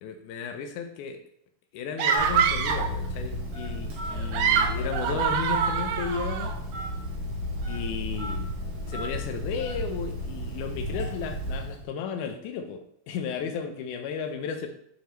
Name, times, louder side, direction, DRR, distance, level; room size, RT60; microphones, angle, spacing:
voice 1, 0.0-1.2 1.7-6.5 7.7-8.5 8.9-14.7, left 6 dB, 80° left, 5 dB, 2.0 m, -34 dB
sound 1, 2.0-3.0 4.1-6.5, right 7 dB, 90° right, 2.2 m, -25 dB
Telephone, 2.2-11.9, left 1 dB, 60° right, 3.0 m, -33 dB
7.9 x 5.1 x 3.0 m, 0.69 s
omnidirectional pair, 3.6 m